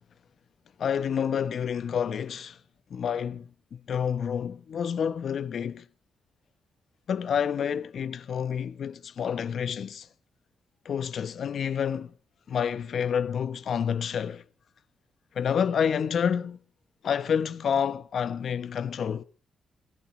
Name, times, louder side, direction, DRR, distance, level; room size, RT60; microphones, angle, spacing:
voice 1, 0.8-2.6 2.9-5.8 7.1-10.1 10.8-12.1 12.5-14.4 15.3-16.6 17.0-19.2, left 7 dB, 65° left, 1.0 m, -29 dB
19.5 x 14.5 x 5.0 m
cardioid pair, 100°, 0 cm